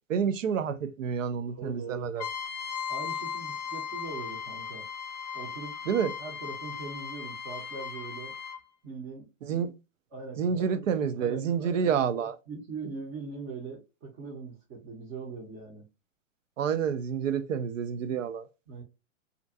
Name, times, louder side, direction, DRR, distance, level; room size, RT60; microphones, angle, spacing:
voice 1, 0.1-2.2 5.9-6.1 9.4-9.7 10.4-12.3 16.6-18.5, right 7 dB, 75° right, 0.6 m, -28 dB
voice 2, 1.5-2.1 2.9-4.9 5.3-5.9 6.2-8.4 8.8-9.3 10.1-10.9 11.2-15.9 18.7-18.8, right 4 dB, 25° right, 0.6 m, -41 dB
Trumpet, 2.2-8.6, left 7 dB, 30° left, 0.5 m, -37 dB
2.5 x 2.2 x 2.5 m
hypercardioid pair, 130°, 38 cm